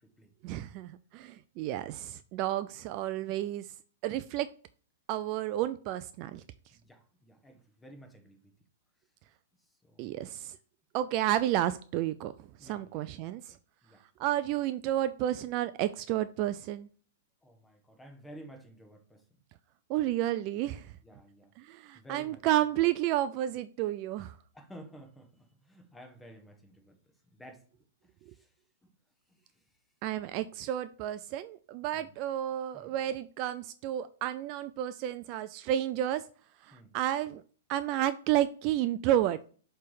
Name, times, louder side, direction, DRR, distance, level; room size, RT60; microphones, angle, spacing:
voice 1, 0.4-3.7 4.0-4.5 5.1-6.4 10.0-10.6 10.9-12.3 12.6-13.6 14.2-16.9 19.9-20.9 21.6-24.3 30.0-36.2 36.7-37.4 37.7-39.5, right 13 dB, 40° right, 13 dB, 0.3 m, -31 dB
voice 2, 6.7-8.4 9.8-10.2 12.6-13.4 13.8-14.0 17.4-19.2 21.0-21.5 21.9-22.4 24.5-27.0 27.4-27.6 28.0-28.5 28.8-28.9 29.3-29.4 31.9-32.1 32.7-32.9 36.7-36.9, equal, 10° left, 5 dB, 1.4 m, -52 dB
6.7 x 3.3 x 4.9 m, 0.42 s
hypercardioid pair, 125°, 0 cm